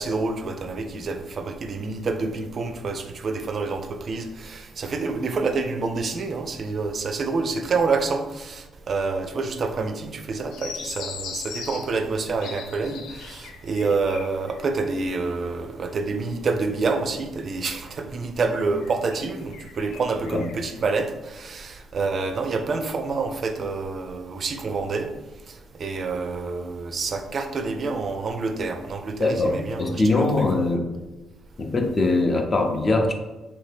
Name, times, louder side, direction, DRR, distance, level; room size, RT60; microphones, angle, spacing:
voice 1, 0.0-25.1 25.8-30.5, right 4 dB, 50° right, 7 dB, 0.4 m, -27 dB
sound 1, 10.5-14.8 15.1-15.6 16.5-16.6 18.5-20.8, left 6 dB, 85° left, 0.3 m, -39 dB
voice 2, 29.2-30.9 31.6-33.1, left 2 dB, 35° left, 3 dB, 0.5 m, -22 dB
2.8 x 2.7 x 3.4 m, 1.1 s
cardioid pair, 90°, 0 cm